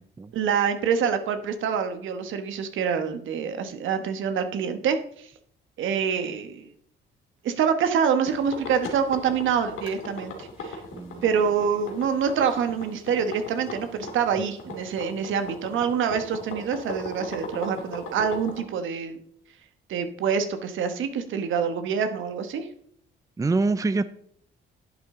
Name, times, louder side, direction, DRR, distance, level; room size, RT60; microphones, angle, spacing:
voice 1, 0.3-5.3 5.8-6.7 7.4-10.8 11.2-19.2 19.9-22.7, right 7 dB, 80° right, 8 dB, 1.3 m, -26 dB
sound 1, 8.3-18.6, left 2 dB, 80° left, 2.5 m, -37 dB
voice 2, 10.9-11.2 23.4-24.0, right 3 dB, 15° right, 14 dB, 0.5 m, -25 dB
10.5 x 8.6 x 3.8 m, 0.64 s
cardioid pair, 90°, 20 cm